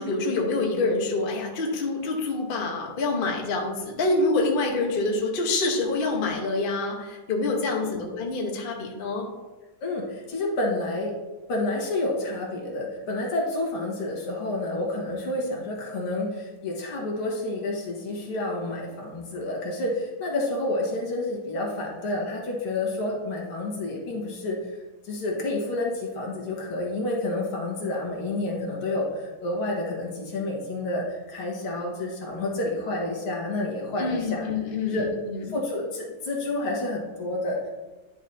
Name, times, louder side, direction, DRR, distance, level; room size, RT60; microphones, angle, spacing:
voice 1, 0.0-9.2 34.0-35.4, left 3 dB, 35° left, 1 dB, 0.9 m, -26 dB
voice 2, 7.8-8.1 9.8-11.1 11.5-24.8 25.0-34.4 34.9-35.1 35.5-37.7, left 2 dB, 90° left, -1 dB, 2.4 m, -29 dB
10.0 x 6.0 x 2.7 m, 1.2 s
omnidirectional pair, 2.3 m